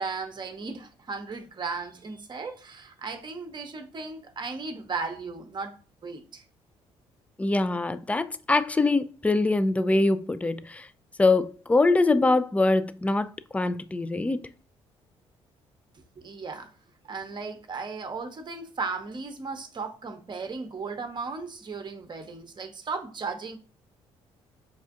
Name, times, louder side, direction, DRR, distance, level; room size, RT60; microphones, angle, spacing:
voice 1, 0.0-6.4 15.9-16.7 17.0-23.6, right 4 dB, 35° right, 0.8 m, -36 dB
voice 2, 7.4-10.9 11.2-14.5, left 2 dB, 10° left, 0.4 m, -23 dB
5.4 x 2.4 x 2.5 m
hypercardioid pair, 50°, 14 cm